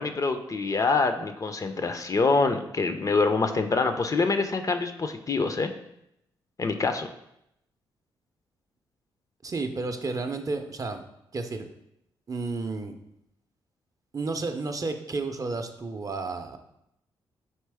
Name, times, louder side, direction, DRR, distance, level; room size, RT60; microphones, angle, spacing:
voice 1, 0.0-5.7 6.6-7.1, left 4 dB, 35° left, 7 dB, 0.4 m, -25 dB
voice 2, 9.4-11.0 11.3-11.7 12.3-13.0 14.1-16.6, right 3 dB, 35° right, 6 dB, 0.5 m, -31 dB
4.3 x 2.9 x 3.4 m, 0.80 s
supercardioid pair, 50°, 10 cm